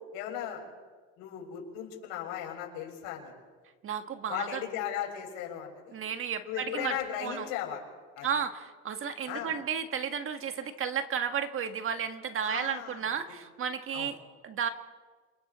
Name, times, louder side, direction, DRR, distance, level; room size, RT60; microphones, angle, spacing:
voice 1, 0.1-0.6 1.2-3.3 4.3-5.9 6.4-7.8 8.2-8.3 9.3-9.5 12.4-13.0 13.9-14.1, left 10 dB, 80° left, 0 dB, 7.0 m, -36 dB
voice 2, 3.8-4.6 5.9-7.5 8.2-14.7, right 7 dB, 35° right, 8 dB, 1.6 m, -33 dB
28.5 x 28.0 x 4.3 m, 1.5 s
cardioid pair, 130°, 35 cm